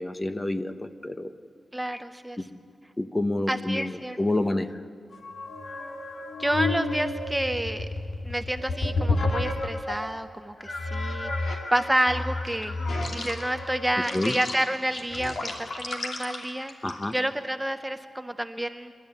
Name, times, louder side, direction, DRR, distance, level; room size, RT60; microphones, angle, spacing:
voice 1, 0.0-1.3 1.9-2.0 2.4-2.5 3.0-4.8 14.1-14.4 16.8-17.2, left 1 dB, 20° left, 9 dB, 1.0 m, -28 dB
voice 2, 1.7-2.4 3.5-4.2 6.4-7.9 8.2-12.8 13.1-16.7 17.1-18.9, right 1 dB, 10° right, 9 dB, 0.7 m, -29 dB
sound 1, 5.1-10.1 10.6-17.3, left 2 dB, 75° left, 2.7 m, -31 dB
27.5 x 12.5 x 9.8 m, 2.3 s
wide cardioid pair, 85°, 0 cm